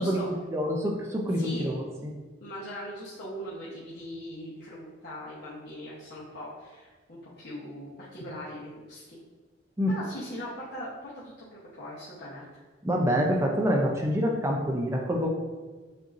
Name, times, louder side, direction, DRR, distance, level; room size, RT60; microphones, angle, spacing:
voice 1, 0.0-2.1 9.8-9.9 12.8-15.3, equal, 15° right, 0 dB, 0.5 m, -26 dB
voice 2, 1.4-1.7 2.4-9.2 9.9-12.6, equal, 60° left, -10 dB, 1.0 m, -40 dB
7.5 x 2.7 x 2.6 m, 1.3 s
head